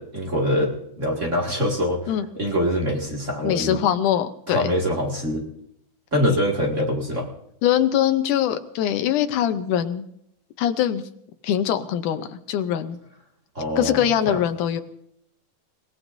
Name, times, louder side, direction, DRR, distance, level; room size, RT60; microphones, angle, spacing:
voice 1, 0.0-3.8 4.5-5.4 6.1-7.3 13.5-14.4, equal, 25° right, -1 dB, 1.8 m, -24 dB
voice 2, 3.4-4.6 7.6-10.1 10.6-11.0 11.4-13.0 13.8-14.8, left 10 dB, 75° left, 9 dB, 2.1 m, -22 dB
29.5 x 17.5 x 2.7 m, 0.74 s
omnidirectional pair, 4.2 m